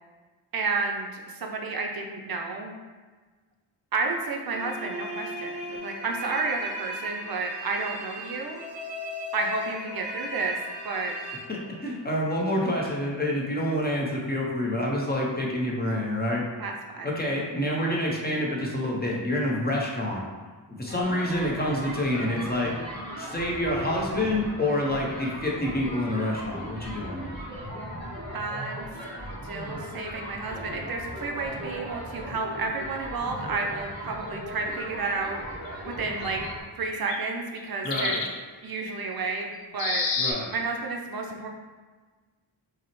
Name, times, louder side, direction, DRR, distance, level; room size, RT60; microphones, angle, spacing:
voice 1, 0.5-2.7 3.9-8.6 9.3-10.6 10.8-11.1 16.6-17.1 28.3-28.8 29.4-35.4 35.8-36.4 36.8-38.2 38.6-40.1 40.5-41.5, right 4 dB, 55° right, 2 dB, 0.5 m, -31 dB
sound 1, 4.5-12.2, left 1 dB, 40° right, 1.1 m, -38 dB
voice 2, 11.5-16.4 17.0-20.2 20.8-22.7 23.2-27.2 37.8-38.3 40.2-40.5, left 1 dB, 20° left, -3 dB, 0.6 m, -27 dB
sound 2, 20.9-36.6, equal, 20° right, 1.4 m, -38 dB
sound 3, 35.3-35.4 36.2-36.5 36.9-37.2 37.6-37.7 37.9-38.3 39.8-40.3, left 4 dB, 75° left, 0.6 m, -29 dB
5.5 x 2.0 x 2.9 m, 1.4 s
wide cardioid pair, 130°, 44 cm